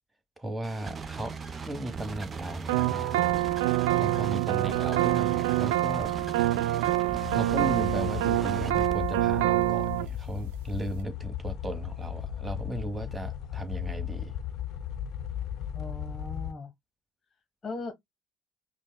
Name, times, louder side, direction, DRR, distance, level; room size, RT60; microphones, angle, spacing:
voice 1, 0.4-1.4 1.7-3.4 4.0-6.2 7.3-14.3, right 1 dB, 15° right, 1.2 m, -36 dB
sound 1, 0.6-9.0, right 5 dB, 35° right, 0.7 m, -39 dB
sound 2, 2.7-10.1, right 16 dB, 85° right, 0.4 m, -26 dB
sound 3, 7.2-16.5, left 10 dB, 65° left, 0.5 m, -36 dB
voice 2, 15.7-16.7 17.6-17.9, left 3 dB, 30° left, 1.1 m, -38 dB
5.2 x 2.2 x 2.2 m
supercardioid pair, 75°, 0 cm